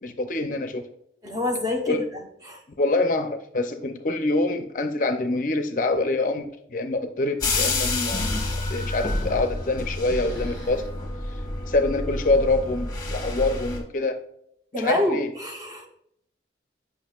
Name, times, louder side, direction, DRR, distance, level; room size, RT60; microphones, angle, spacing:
voice 1, 0.0-0.9 1.9-2.1 2.8-8.3 8.7-10.9 11.3-11.4 11.7-14.2 14.7-15.3, left 2 dB, 45° left, 7 dB, 0.5 m, -25 dB
voice 2, 1.2-2.0 2.4-2.6 14.7-15.9, left 1 dB, 20° right, 2 dB, 0.9 m, -26 dB
sound 1, 7.4-13.8, left 2 dB, 20° left, 1.3 m, -28 dB
sound 2, 9.4-9.9 10.2-10.9 11.3-11.4 12.1-12.2 12.9-13.3, right 1 dB, 75° right, 2.2 m, -41 dB
8.5 x 5.9 x 2.4 m, 0.71 s
head